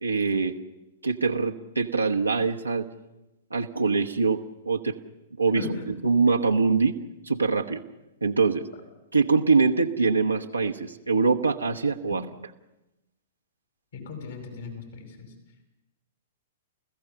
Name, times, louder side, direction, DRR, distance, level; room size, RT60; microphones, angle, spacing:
voice 1, 0.0-0.5 1.0-2.9 3.5-4.9 5.4-6.9 7.2-7.8 8.2-8.7 9.1-12.3, right 4 dB, 90° right, 1 dB, 1.0 m, -24 dB
voice 2, 13.9-15.3, left 3 dB, 65° left, 5 dB, 5.3 m, -37 dB
29.5 x 15.0 x 6.9 m, 0.96 s
figure-of-eight pair, 105°, 0 cm